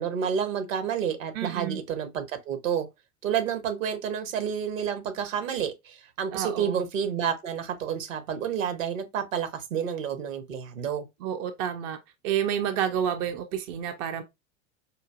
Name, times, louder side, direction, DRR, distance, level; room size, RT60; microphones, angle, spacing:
voice 1, 0.0-2.9 3.2-11.1, right 8 dB, 65° right, 1.0 m, -30 dB
voice 2, 1.3-1.8 6.3-6.9 11.2-12.0 12.2-14.2, right 9 dB, 30° right, 0.4 m, -29 dB
4.9 x 2.5 x 2.3 m
figure-of-eight pair, 85°, 42 cm